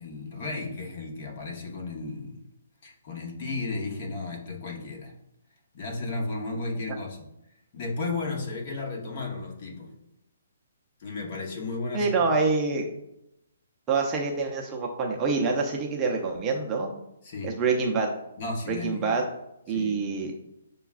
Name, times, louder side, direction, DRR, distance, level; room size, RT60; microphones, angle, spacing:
voice 1, 0.0-2.4 2.8-5.1 5.7-7.2 7.7-9.9 11.0-12.1 17.2-17.5 18.4-19.1 19.7-19.9, left 3 dB, 45° left, 1 dB, 1.0 m, -34 dB
voice 2, 11.9-12.9 13.9-16.9 17.4-18.1 18.7-19.2 19.7-20.3, right 4 dB, 20° right, 0 dB, 0.6 m, -26 dB
6.7 x 2.3 x 2.4 m, 0.82 s
hypercardioid pair, 150°, 0 cm